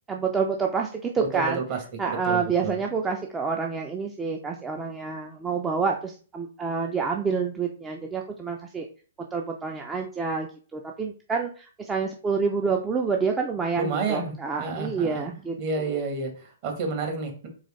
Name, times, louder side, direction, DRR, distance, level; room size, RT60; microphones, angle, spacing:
voice 1, 0.1-1.6 2.0-8.9 9.3-10.5 10.7-16.0, right 5 dB, 15° right, 2 dB, 0.4 m, -28 dB
voice 2, 1.2-1.8 2.1-2.8 13.8-15.3 15.6-17.5, right 4 dB, 40° right, 3 dB, 1.3 m, -30 dB
3.9 x 3.3 x 3.2 m, 0.41 s
figure-of-eight pair, 115°, 0 cm